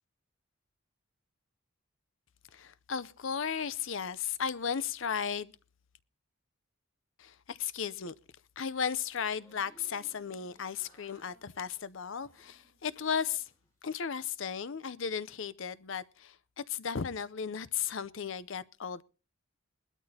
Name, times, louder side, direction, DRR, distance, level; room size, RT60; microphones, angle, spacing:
voice 1, 2.5-5.5 7.2-8.1 8.6-13.5 13.8-19.0, left 7 dB, 60° left, 0.6 m, -35 dB
sound 1, 9.3-13.7 14.0-14.8, equal, 15° left, 6.7 m, -64 dB
20.5 x 12.5 x 2.8 m
head